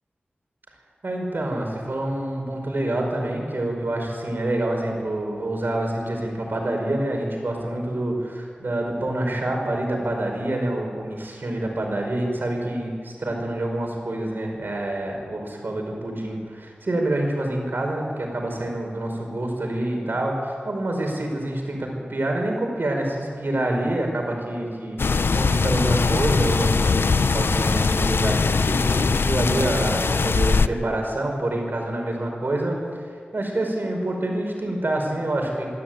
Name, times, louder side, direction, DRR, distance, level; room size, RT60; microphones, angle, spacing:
voice 1, 1.0-33.0 33.3-35.7, right 1 dB, 60° right, 1 dB, 5.2 m, -27 dB
sound 1, 25.0-30.7, left 4 dB, 75° left, 0.6 m, -21 dB
24.0 x 12.0 x 9.2 m, 2.1 s
wide cardioid pair, 55°, 4 cm